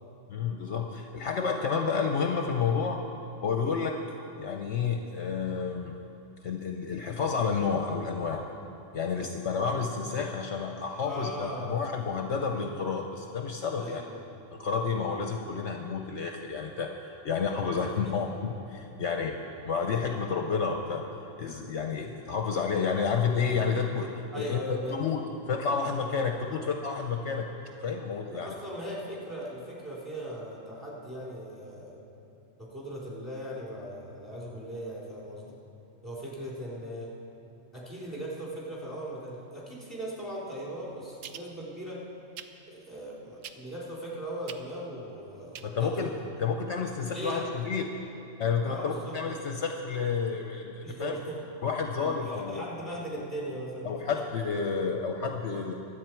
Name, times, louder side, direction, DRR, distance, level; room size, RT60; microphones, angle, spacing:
voice 1, 0.3-3.0 3.4-4.0 4.4-5.9 6.4-8.5 8.9-14.0 14.5-19.4 19.6-21.0 21.4-24.1 24.3-27.5 27.8-28.5 45.6-46.1 46.4-47.8 48.4-51.2 51.6-52.6 53.8-55.7, left 5 dB, 65° left, 4 dB, 1.0 m, -30 dB
voice 2, 11.0-11.8 13.7-14.5 15.1-15.2 17.9-18.1 24.3-25.0 26.5-26.6 28.3-32.1 32.6-35.6 36.0-37.1 37.7-42.0 42.7-46.3 47.1-47.6 48.6-49.1 50.8-51.4 52.0-54.2, right 1 dB, ahead, -6 dB, 3.5 m, -39 dB
sound 1, 41.2-41.5 42.4-42.5 43.4-43.8 44.5-44.6 45.5-45.7 46.0-46.1, right 9 dB, 80° right, 1.0 m, -42 dB
23.5 x 8.2 x 4.6 m, 2.8 s
omnidirectional pair, 1.3 m